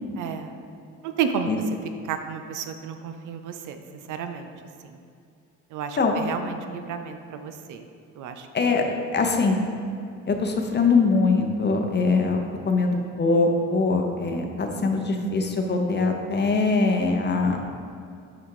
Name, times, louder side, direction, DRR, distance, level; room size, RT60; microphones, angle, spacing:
voice 1, 0.2-0.6 1.0-1.5 2.0-3.8 4.1-4.5 4.9-5.0 5.7-7.8 8.2-9.0, right 7 dB, 80° right, 7 dB, 0.6 m, -32 dB
voice 2, 9.1-9.6 10.3-17.6, left 3 dB, 35° left, 3 dB, 0.8 m, -22 dB
5.9 x 4.2 x 4.8 m, 2.4 s
cardioid pair, 90°, 30 cm